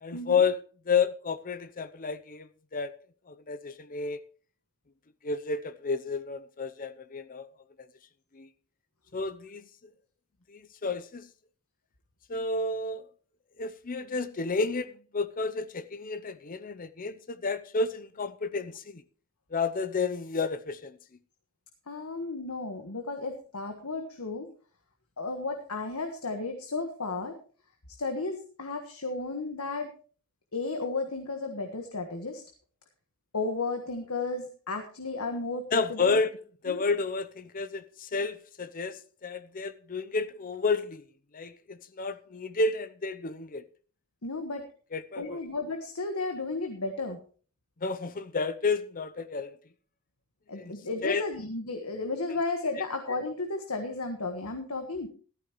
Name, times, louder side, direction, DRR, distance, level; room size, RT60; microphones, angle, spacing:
voice 1, 0.0-2.9 3.3-4.2 5.2-7.5 7.8-7.9 8.3-8.5 9.1-9.6 10.5-11.3 12.3-13.1 13.6-19.0 19.5-21.0 35.7-36.3 36.6-41.0 41.3-43.6 44.9-45.4 47.8-49.6 50.5-50.7 51.0-51.2, left 4 dB, 40° left, 0.7 m, -31 dB
voice 2, 21.9-24.5 25.2-27.3 28.0-29.9 30.5-32.4 33.3-36.2 36.7-36.8 44.2-44.6 45.2-47.2 50.5-55.1, left 3 dB, 80° left, 1.5 m, -33 dB
15.0 x 13.5 x 3.1 m
head